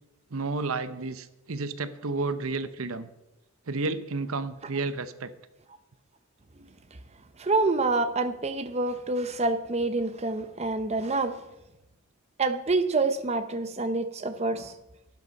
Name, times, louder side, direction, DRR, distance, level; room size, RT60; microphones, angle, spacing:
voice 1, 0.3-3.1 3.7-5.3, right 3 dB, 70° right, 13 dB, 0.8 m, -31 dB
voice 2, 7.4-11.4 12.4-14.7, right 3 dB, 30° right, 9 dB, 0.7 m, -27 dB
12.5 x 12.0 x 5.3 m, 0.93 s
head